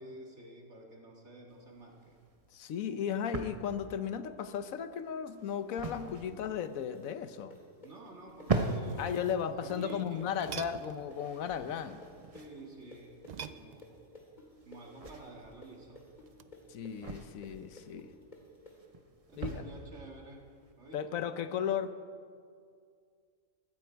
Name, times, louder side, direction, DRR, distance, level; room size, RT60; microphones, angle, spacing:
voice 1, 0.0-2.2 7.8-9.2 9.5-10.5 12.3-14.1 14.7-16.1 19.3-20.5 20.8-21.2, right 2 dB, 55° right, 0 dB, 2.4 m, -50 dB
sound 1, 1.5-21.2, right 3 dB, 30° right, 0.9 m, -42 dB
voice 2, 2.5-7.6 9.0-12.0 16.7-18.1 19.4-19.6 20.9-22.0, left 8 dB, 85° left, 11 dB, 1.2 m, -35 dB
sound 2, 6.3-13.9 14.1-18.7, left 3 dB, 35° left, 2.4 m, -53 dB
sound 3, 8.8-11.1 13.2-14.2 16.3-16.6, right 7 dB, 75° right, 0.4 m, -46 dB
19.0 x 14.5 x 4.6 m, 2.2 s
omnidirectional pair, 1.4 m